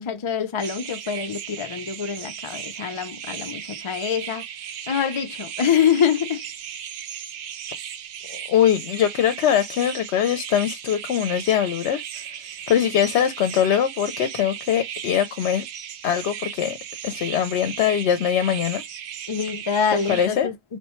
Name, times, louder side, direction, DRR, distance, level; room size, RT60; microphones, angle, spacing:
voice 1, 0.0-4.4 4.9-6.4 19.3-20.8, left 7 dB, 40° left, 0.5 m, -25 dB
sound 1, 0.6-20.3, right 9 dB, 90° right, 0.9 m, -36 dB
voice 2, 8.3-12.0 12.7-15.6 16.0-16.8 17.0-18.8 20.1-20.5, left 9 dB, 85° left, 0.9 m, -22 dB
3.3 x 2.2 x 4.2 m
omnidirectional pair, 1.1 m